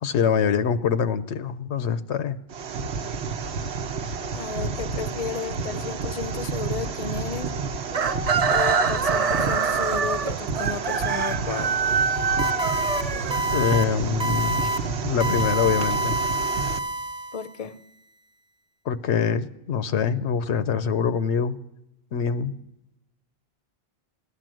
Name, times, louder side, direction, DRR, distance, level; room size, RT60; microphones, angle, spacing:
voice 1, 0.0-2.4 13.5-14.7 15.0-16.2 18.9-21.6 22.1-22.5, left 7 dB, 85° left, 1.0 m, -24 dB
sound 1, 2.5-16.8, right 5 dB, 75° right, 1.1 m, -30 dB
voice 2, 4.3-7.5 8.5-11.8 17.3-17.8, left 6 dB, 40° left, 0.6 m, -33 dB
Chicken rooster, 7.9-13.9, right 5 dB, 45° right, 0.6 m, -25 dB
sound 2, 12.4-13.0 13.3-13.8 14.2-14.8 15.2-17.5, right 2 dB, 5° right, 1.0 m, -27 dB
16.0 x 11.5 x 7.6 m
omnidirectional pair, 1.1 m